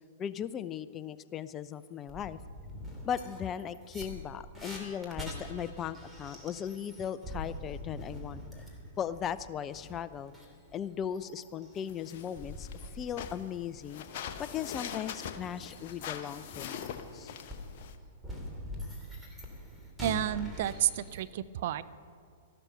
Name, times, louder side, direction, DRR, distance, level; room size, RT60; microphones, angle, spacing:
voice 1, 0.2-2.4 3.0-8.6 9.0-10.3 10.7-12.7 12.9-14.0 14.4-16.7 17.1-17.3, left 8 dB, 25° left, 15 dB, 0.5 m, -37 dB
sound 1, 1.7-1.8 2.1-13.3 13.6-21.2, left 1 dB, ahead, 2.9 m, -45 dB
sound 2, 11.7-18.0, left 8 dB, 50° left, 1.0 m, -43 dB
voice 2, 20.0-21.8, right 12 dB, 55° right, 15 dB, 0.5 m, -31 dB
13.5 x 12.0 x 5.9 m, 2.2 s
figure-of-eight pair, 105°, 0 cm